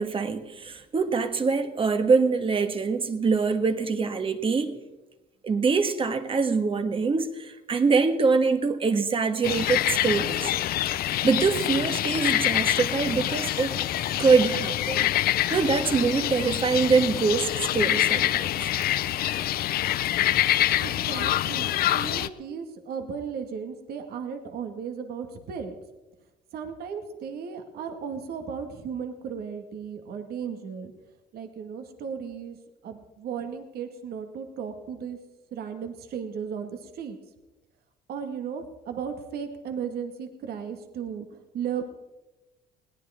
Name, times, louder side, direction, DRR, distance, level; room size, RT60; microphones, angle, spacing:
voice 1, 0.0-4.8 5.4-10.5 11.2-13.8 14.2-15.1 15.5-18.7, right 4 dB, 30° right, 1.5 m, -24 dB
sound 1, 9.4-22.3, left 13 dB, 65° left, 0.6 m, -26 dB
voice 2, 20.8-25.8 26.5-30.9 31.3-32.6 32.8-35.2 35.5-37.2 38.1-41.8, right 7 dB, 65° right, 1.8 m, -35 dB
21.0 x 17.5 x 3.6 m
cardioid pair, 110°, 17 cm